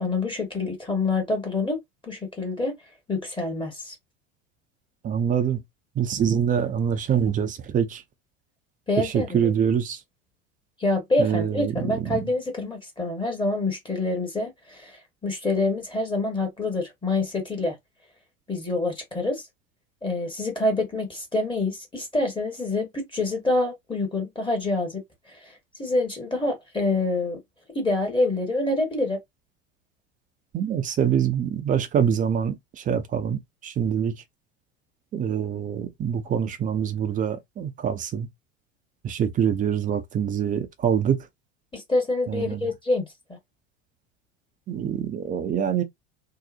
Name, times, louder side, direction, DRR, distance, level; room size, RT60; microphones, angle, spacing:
voice 1, 0.0-1.8 2.1-2.8 3.1-3.9 8.9-9.5 10.8-17.8 18.5-19.4 20.0-25.0 25.3-25.5 25.8-27.4 27.7-29.2 41.7-43.0, left 2 dB, 10° left, 0.9 m, -26 dB
voice 2, 5.0-5.6 6.0-8.0 9.0-10.0 11.2-12.3 30.5-34.1 35.1-38.3 39.0-41.2 42.3-42.6 44.7-45.8, right 8 dB, 20° right, 0.5 m, -25 dB
2.8 x 2.0 x 2.4 m
figure-of-eight pair, 75°, 40 cm